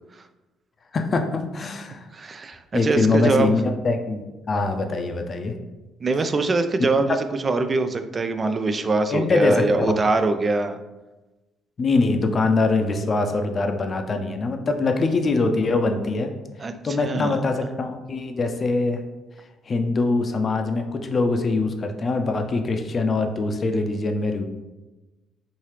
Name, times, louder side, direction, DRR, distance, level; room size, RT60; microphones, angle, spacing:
voice 1, 0.9-2.1 2.7-5.5 9.1-10.0 11.8-16.3 16.8-19.0 19.7-24.5, left 3 dB, 45° left, 6 dB, 0.5 m, -23 dB
voice 2, 2.1-3.6 6.0-10.8 16.6-17.4, right 3 dB, 35° right, 9 dB, 0.4 m, -23 dB
4.6 x 2.8 x 3.2 m, 1.1 s
hypercardioid pair, 50°, 0 cm